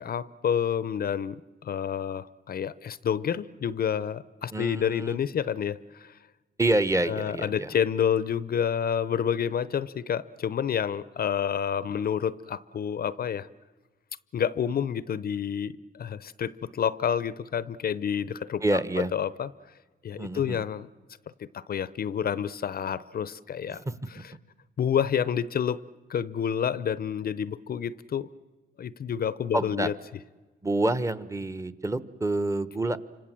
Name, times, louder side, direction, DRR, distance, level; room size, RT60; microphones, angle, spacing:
voice 1, 0.0-6.2 7.1-13.5 14.3-19.5 20.0-20.9 21.4-24.3 24.8-25.8 26.1-28.3 28.8-29.9, left 8 dB, 50° left, 17 dB, 0.8 m, -29 dB
voice 2, 4.5-5.2 6.6-7.7 18.6-19.1 20.2-20.6 23.7-24.0 29.5-29.9 30.6-33.0, right 2 dB, 15° right, 14 dB, 1.2 m, -27 dB
29.0 x 26.0 x 7.6 m, 1.3 s
cardioid pair, 90°, 20 cm